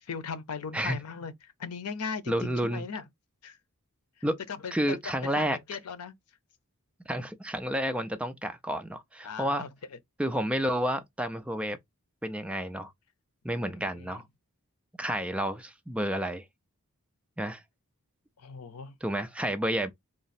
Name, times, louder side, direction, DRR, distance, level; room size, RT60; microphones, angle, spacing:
voice 1, 0.0-3.1 3.4-3.6 4.5-6.1 9.2-9.7 13.5-14.2 18.4-19.0, left 5 dB, 85° left, 0.6 m, -38 dB
voice 2, 2.3-2.8 4.2-4.4 4.7-5.6 7.1-9.6 10.2-11.8 12.2-12.9 13.4-14.2 15.0-16.4 17.4-17.6 19.0-19.9, right 1 dB, 5° right, 0.4 m, -30 dB
3.6 x 2.0 x 4.1 m
head